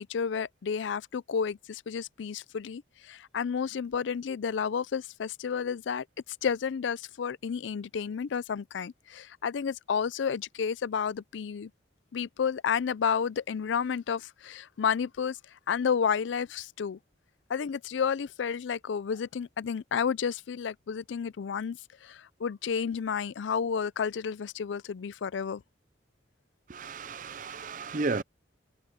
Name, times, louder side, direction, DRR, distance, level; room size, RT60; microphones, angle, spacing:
voice 1, 0.0-6.0 6.4-11.7 12.1-15.4 15.7-17.0 17.5-25.6, left 6 dB, 80° left, 0.4 m, -31 dB
voice 2, 26.7-28.2, right 3 dB, 45° right, 0.6 m, -33 dB
head